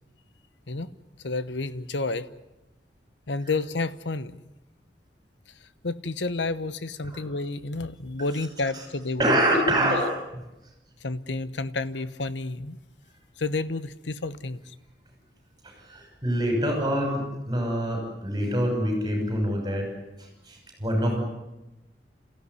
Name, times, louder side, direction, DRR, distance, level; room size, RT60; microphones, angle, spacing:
voice 1, 1.2-2.3 3.3-4.4 5.6-9.4 9.8-10.0 11.0-12.8 13.4-14.7, left 3 dB, 80° left, 14 dB, 1.0 m, -30 dB
voice 2, 9.2-10.1 15.6-19.9 20.5-21.2, equal, 25° right, 3 dB, 6.3 m, -25 dB
28.0 x 15.5 x 9.7 m, 0.98 s
head